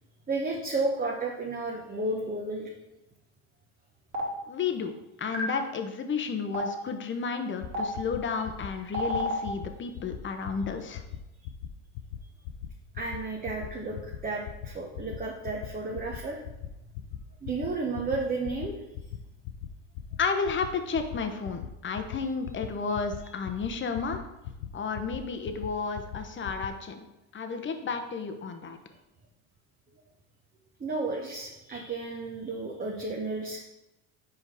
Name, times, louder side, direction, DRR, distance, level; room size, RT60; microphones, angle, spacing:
voice 1, 0.3-2.7 12.9-16.4 17.4-18.8 30.8-33.6, right 3 dB, 20° right, -1 dB, 0.9 m, -32 dB
Stream, 4.1-4.2 5.3-5.4 6.5-6.6 7.7-7.8 8.9-9.3, equal, 40° right, 1.8 m, -29 dB
voice 2, 4.5-4.9 5.2-11.0 20.2-24.2 24.7-27.0 27.3-28.8, left 5 dB, 30° left, 6 dB, 0.9 m, -32 dB
sound 1, 7.6-7.7 7.9-8.2 8.4-8.7 8.9-9.2 9.5-9.7 9.9-10.2 10.4-10.7 10.9-11.2 11.4-11.7 12.0-12.2 12.4-12.7 13.0-13.2 13.4-13.7 13.9-14.2 14.5-14.7 14.9-15.2 15.4-15.7 15.9-16.2 16.4-16.7 16.9-17.2 17.4-17.7 17.9-18.2 18.4-18.7 18.9-19.2 19.4-19.7 20.0-20.2 20.4-20.7 20.9-21.2 21.4-21.7 22.0-22.2 22.4-22.7 22.9-23.2 23.5-23.7 23.9-24.2 24.4-24.7 25.0-25.2 25.5-25.7 26.0-26.2 26.5-26.7, left 11 dB, 70° left, 0.7 m, -38 dB
5.5 x 4.7 x 4.9 m, 0.96 s
supercardioid pair, 90°, 41 cm